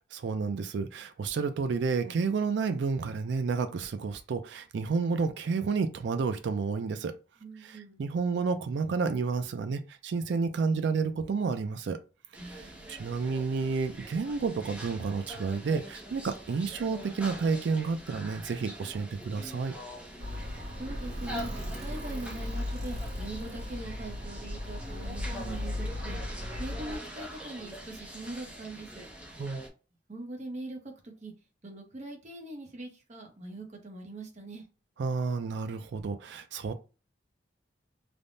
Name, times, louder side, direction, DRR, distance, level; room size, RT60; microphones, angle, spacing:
voice 1, 0.1-7.1 7.6-12.0 12.5-19.7 29.4-29.6 35.0-36.7, right 4 dB, 70° right, 0.4 m, -30 dB
voice 2, 7.4-8.0 12.4-12.9 20.8-26.2 26.6-29.1 30.1-31.3 31.6-34.6, right 2 dB, 40° right, 0.8 m, -42 dB
sound 1, 12.3-29.7, equal, 10° right, 0.6 m, -44 dB
Alarm, 20.2-27.0, left 1 dB, 85° right, 1.6 m, -37 dB
3.3 x 2.1 x 2.6 m
head